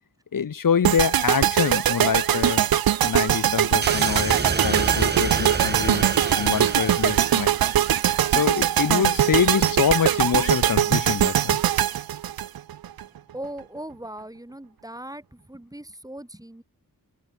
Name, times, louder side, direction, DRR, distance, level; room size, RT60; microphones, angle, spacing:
voice 1, 0.3-2.6 3.0-6.0 6.4-7.5 8.3-11.6, left 7 dB, 70° left, 1.2 m, -25 dB
sound 1, 0.8-13.0, right 11 dB, 90° right, 0.6 m, -21 dB
sound 2, 3.8-8.2, right 3 dB, 30° right, 1.6 m, -29 dB
voice 2, 13.3-16.6, right 1 dB, 10° right, 2.2 m, -39 dB
wide cardioid pair, 105°, 35 cm